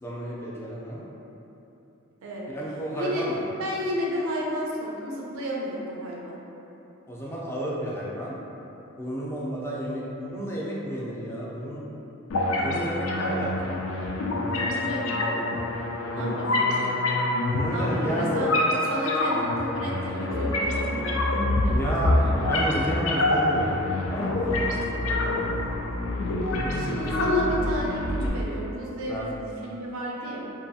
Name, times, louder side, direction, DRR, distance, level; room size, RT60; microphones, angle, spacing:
voice 1, 0.0-1.0 2.5-3.4 7.1-8.4 9.0-11.8 12.6-13.8 16.2-16.5 17.4-18.3 21.7-25.4 26.5-27.2 29.1-29.2, right 1 dB, 10° left, -6 dB, 0.3 m, -31 dB
voice 2, 3.0-3.3 3.6-6.4 14.5-15.5 16.1-16.9 17.7-18.5 18.8-22.8 26.8-30.4, equal, 90° right, -3 dB, 0.5 m, -33 dB
sound 1, 12.3-28.3, left 2 dB, 85° left, 0.4 m, -26 dB
2.6 x 2.3 x 2.6 m, 3.0 s
head